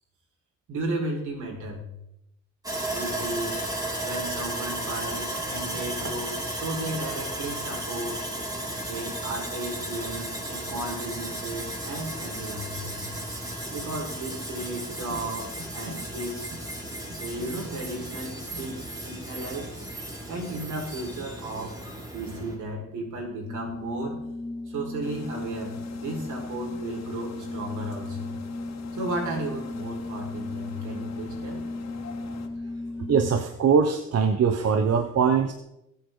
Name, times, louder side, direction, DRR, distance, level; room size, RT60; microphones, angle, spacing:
voice 1, 0.7-1.9 2.9-3.6 4.0-8.3 8.9-13.0 13.7-16.5 17.2-19.8 20.3-24.2 24.7-28.3 28.9-31.6, right 1 dB, 80° right, 0 dB, 5.5 m, -34 dB
Sawing, 2.6-22.6, right 1 dB, 10° right, 4.4 m, -34 dB
Organ, 23.4-33.7, left 2 dB, 15° left, 0.6 m, -36 dB
sound 1, 25.0-32.5, left 5 dB, 60° left, 2.5 m, -45 dB
voice 2, 33.0-35.5, right 6 dB, 55° right, 7 dB, 1.2 m, -22 dB
21.0 x 8.5 x 4.1 m, 0.81 s
cardioid pair, 90°, 30 cm